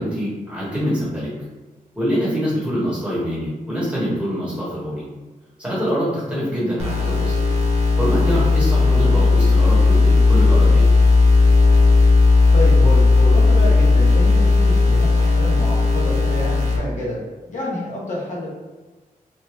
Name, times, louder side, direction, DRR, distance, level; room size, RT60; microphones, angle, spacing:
voice 1, 0.0-1.3 2.0-5.0 5.6-7.6 8.0-10.9, equal, 10° right, -8 dB, 1.0 m, -25 dB
sound 1, 6.8-16.8, left 3 dB, 50° right, 0.7 m, -15 dB
voice 2, 12.5-18.5, left 1 dB, 60° left, -6 dB, 0.9 m, -28 dB
3.0 x 2.1 x 3.2 m, 1.3 s
wide cardioid pair, 170°, 14 cm